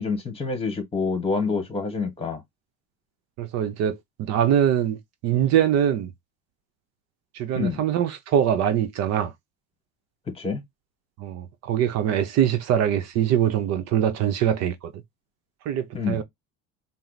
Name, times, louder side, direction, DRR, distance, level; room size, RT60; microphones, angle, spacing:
voice 1, 0.0-2.4 7.5-7.8 10.3-10.6 15.9-16.2, left 4 dB, 20° left, 1.4 m, -27 dB
voice 2, 3.4-5.0 5.2-6.1 7.3-9.3 11.2-14.9 15.7-16.2, right 9 dB, 60° right, 0.7 m, -23 dB
4.4 x 2.0 x 4.0 m
cardioid pair, 140°, 30 cm